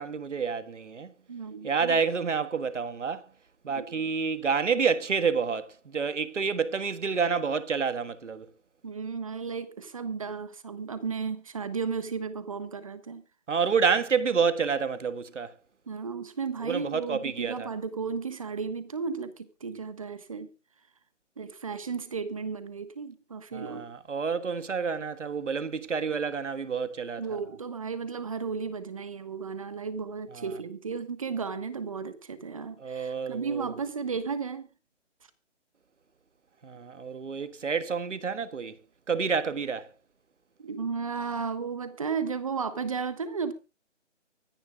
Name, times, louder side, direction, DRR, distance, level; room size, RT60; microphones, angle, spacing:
voice 1, 0.0-1.1 1.6-3.2 3.6-8.5 13.5-15.5 16.6-17.7 23.5-27.2 30.3-30.5 32.8-33.7 36.6-38.8 39.1-39.9, right 5 dB, 75° right, 1.6 m, -29 dB
voice 2, 1.3-2.0 3.8-4.0 8.8-13.3 15.9-20.5 21.4-23.9 27.2-34.7 40.6-43.5, right 5 dB, 30° right, 1.3 m, -34 dB
24.5 x 10.5 x 2.3 m
hypercardioid pair, 175°, 37 cm